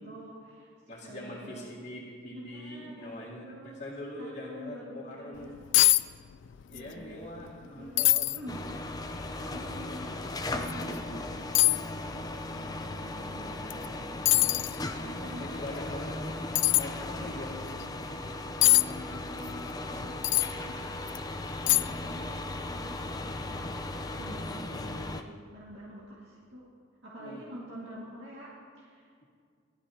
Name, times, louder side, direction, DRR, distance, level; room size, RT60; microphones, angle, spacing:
voice 1, 0.0-1.7 2.3-3.7 4.2-5.6 6.7-8.1 8.3-8.6 9.1-15.8 16.9-18.1 18.5-21.3 21.6-26.7 27.0-29.1, equal, 65° right, -6 dB, 2.0 m, -47 dB
voice 2, 0.9-5.6 6.7-8.4 15.0-16.2 16.7-17.7 27.2-27.4, left 1 dB, 35° left, -9 dB, 2.1 m, -42 dB
sound 1, 5.4-5.5 5.7-6.0 6.3-6.9 7.2-7.3 8.0-8.4 9.0-9.1 10.6-10.8 11.5-11.8 13.7-13.9 14.3-14.8 16.5-16.8 18.6-18.8 20.2-20.5 21.1-21.2 21.7-22.1 22.4-22.5, left 19 dB, 70° left, 0.3 m, -22 dB
sound 2, 8.5-25.2, left 2 dB, 20° left, 0.5 m, -37 dB
18.0 x 12.0 x 2.8 m, 2.1 s
head